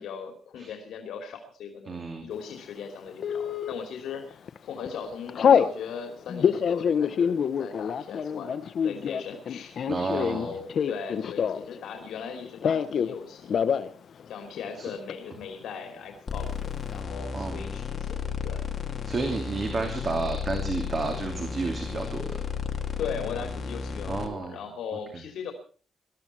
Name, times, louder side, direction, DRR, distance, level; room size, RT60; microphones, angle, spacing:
voice 1, 0.0-9.8 10.1-13.7 14.3-18.2 18.4-18.6 23.0-25.5, left 6 dB, 80° left, 4 dB, 2.8 m, -39 dB
voice 2, 1.9-2.2 9.9-10.5 14.8-14.9 17.3-17.6 19.1-22.4 24.1-24.6, right 3 dB, 35° right, 4 dB, 2.7 m, -31 dB
Telephone, 3.2-3.7 4.3-4.6 4.8-5.7 6.3-11.8 12.0-13.1 13.4-13.9 14.2-14.3 14.5-15.1, left 7 dB, 55° left, 1.0 m, -25 dB
sound 1, 16.3-24.3, left 7 dB, 35° left, 2.4 m, -33 dB
20.5 x 13.5 x 4.5 m, 0.40 s
cardioid pair, 145°, 0 cm